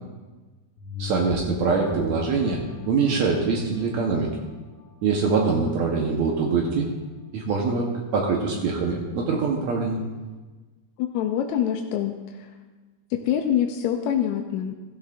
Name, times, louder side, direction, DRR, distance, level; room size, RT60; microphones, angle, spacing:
sound 1, 0.8-5.7 6.2-6.3, left 4 dB, 65° left, 1.9 m, -39 dB
voice 1, 1.0-4.3 5.0-6.9 7.3-10.0, right 4 dB, 70° right, -1 dB, 2.3 m, -24 dB
voice 2, 11.0-12.5 13.1-14.8, left 9 dB, 80° left, 3 dB, 1.9 m, -25 dB
15.5 x 12.5 x 2.6 m, 1.3 s
omnidirectional pair, 3.4 m